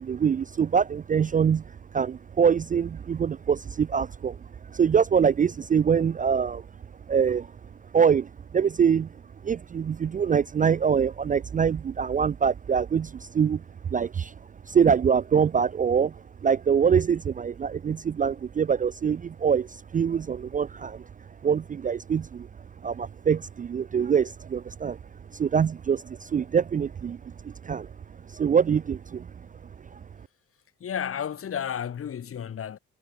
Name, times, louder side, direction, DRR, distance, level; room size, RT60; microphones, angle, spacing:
voice 1, 0.0-1.6 1.9-4.4 4.7-6.6 7.1-7.5 7.9-9.1 9.4-13.6 13.9-14.3 14.7-16.2 16.4-21.0 21.4-22.5 22.8-25.0 25.3-27.9 28.3-29.3 29.9-30.0, right 7 dB, 30° right, 0.4 m, -24 dB
voice 2, 30.8-32.8, left 8 dB, 45° left, 1.5 m, -32 dB
cardioid pair, 90°, 30 cm